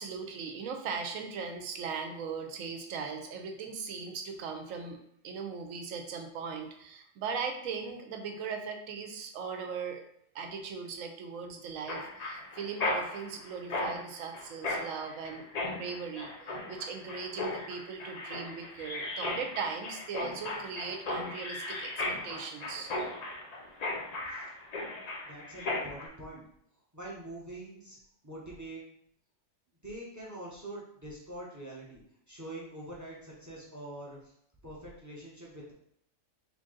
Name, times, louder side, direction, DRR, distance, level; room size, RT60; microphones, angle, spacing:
voice 1, 0.0-5.0 5.2-10.0 10.3-22.9, right 5 dB, 85° right, 5 dB, 1.0 m, -39 dB
Mechanisms, 11.9-26.1, left 2 dB, 55° left, 0.4 m, -36 dB
voice 2, 25.2-26.4 26.9-28.0 28.2-28.8 29.8-32.0 32.3-34.3 34.6-35.7, right 1 dB, 20° right, -4 dB, 0.6 m, -44 dB
3.3 x 2.6 x 3.7 m, 0.71 s
omnidirectional pair, 1.4 m